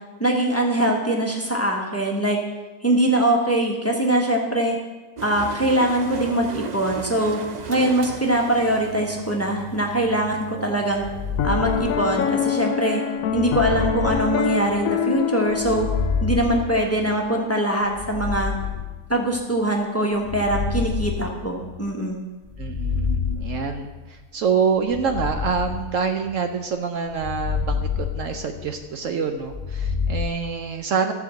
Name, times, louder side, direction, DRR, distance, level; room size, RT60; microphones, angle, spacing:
voice 1, 0.2-2.4 2.8-4.8 5.2-7.4 7.7-11.0 11.4-13.0 13.3-15.9 16.2-18.5 19.1-22.3, right 1 dB, 10° left, 0 dB, 1.3 m, -22 dB
sound 1, 5.2-12.4, right 6 dB, 45° right, 0.6 m, -36 dB
sound 2, 10.9-12.5 13.3-15.0 15.5-17.3 17.9-19.5 20.2-21.9 22.5-24.1 24.9-26.5 27.1-28.9 29.4-30.3, left 6 dB, 50° left, 0.3 m, -28 dB
Piano, 11.4-16.7, left 8 dB, 70° left, 1.0 m, -25 dB
voice 2, 22.6-27.8 28.1-31.1, right 6 dB, 65° right, 5 dB, 1.0 m, -26 dB
14.0 x 4.9 x 7.6 m, 1.2 s
omnidirectional pair, 1.6 m